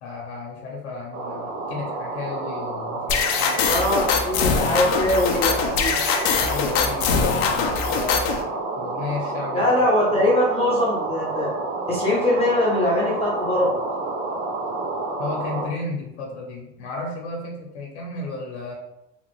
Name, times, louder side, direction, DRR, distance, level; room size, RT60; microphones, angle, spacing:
voice 1, 0.0-3.6 6.4-8.2 8.8-9.7 15.2-18.7, left 3 dB, 80° left, 0 dB, 1.0 m, -33 dB
sound 1, 1.1-15.7, right 3 dB, 45° right, 0.7 m, -29 dB
sound 2, 3.1-8.4, left 5 dB, 55° left, 0.6 m, -23 dB
voice 2, 3.6-6.0 9.5-11.5 11.9-13.8, left 1 dB, 20° left, -6 dB, 0.8 m, -22 dB
3.1 x 2.4 x 3.1 m, 0.86 s
supercardioid pair, 115°, 33 cm